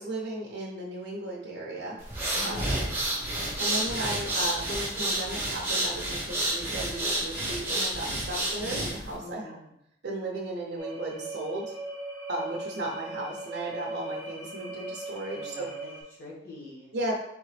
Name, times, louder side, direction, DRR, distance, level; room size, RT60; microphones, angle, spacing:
voice 1, 0.0-2.0 2.4-2.8 3.6-9.6 10.0-11.7 12.3-15.7 16.9-17.1, right 1 dB, 60° right, -3 dB, 0.7 m, -35 dB
sound 1, 2.0-9.1, right 1 dB, 10° right, 0.9 m, -30 dB
voice 2, 2.3-2.7 9.2-9.7 15.1-17.0, left 2 dB, 50° left, -6 dB, 1.7 m, -46 dB
sound 2, 10.8-16.0, right 2 dB, 10° left, 0.7 m, -39 dB
3.7 x 3.6 x 3.2 m, 0.75 s
head